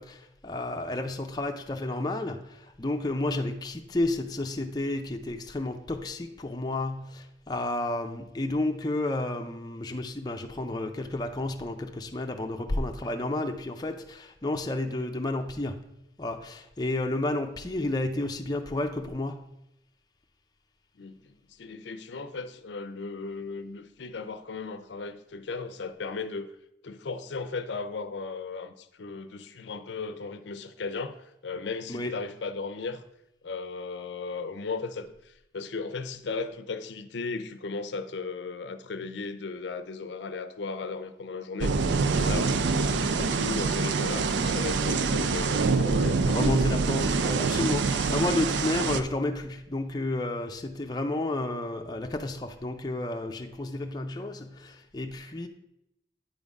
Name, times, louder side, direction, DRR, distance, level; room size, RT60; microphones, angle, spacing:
voice 1, 0.0-15.9 16.2-19.5 31.9-32.1 46.2-55.5, left 2 dB, 20° left, 3 dB, 0.4 m, -31 dB
voice 2, 21.0-26.5 26.8-33.0 33.4-46.2, left 4 dB, 75° left, 11 dB, 0.5 m, -36 dB
sound 1, 41.6-49.0, right 4 dB, 80° right, 0.4 m, -25 dB
8.9 x 3.6 x 5.2 m, 0.83 s
head